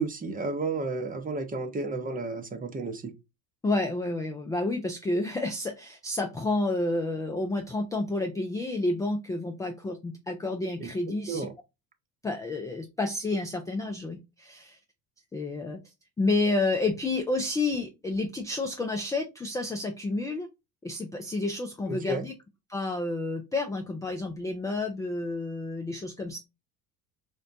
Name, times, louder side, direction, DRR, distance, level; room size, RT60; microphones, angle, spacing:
voice 1, 0.0-3.1 10.8-10.9 11.3-11.5 21.9-22.2, right 3 dB, 20° right, 0.7 m, -32 dB
voice 2, 3.6-11.5 12.2-14.8 15.3-15.8 16.2-20.5 20.8-22.3 22.7-26.4, left 2 dB, 10° left, 0.3 m, -30 dB
3.9 x 2.1 x 2.6 m
hypercardioid pair, 65°, 48 cm